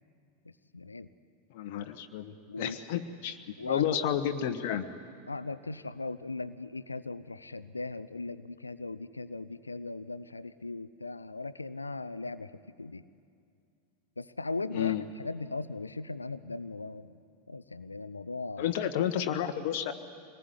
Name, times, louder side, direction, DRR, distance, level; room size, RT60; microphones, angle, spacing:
voice 1, 0.4-1.1 2.5-2.8 3.6-3.9 5.3-13.0 14.2-17.2 17.5-18.7, left 3 dB, 80° left, 16 dB, 0.7 m, -38 dB
voice 2, 1.5-4.9 14.7-15.0 18.6-19.9, left 10 dB, 50° left, 7 dB, 1.2 m, -31 dB
24.5 x 20.0 x 9.8 m, 2.5 s
figure-of-eight pair, 90°, 0 cm